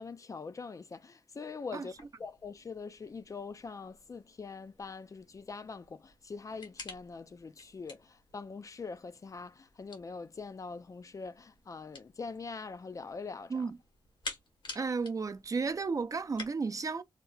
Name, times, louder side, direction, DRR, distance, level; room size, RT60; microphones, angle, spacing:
voice 1, 0.0-13.7, left 4 dB, 40° left, 0.4 m, -43 dB
sound 1, 1.9-16.5, left 3 dB, 80° left, 1.4 m, -51 dB
voice 2, 14.7-17.0, right 4 dB, 45° right, 0.5 m, -33 dB
2.9 x 2.1 x 3.8 m
cardioid pair, 65°, 8 cm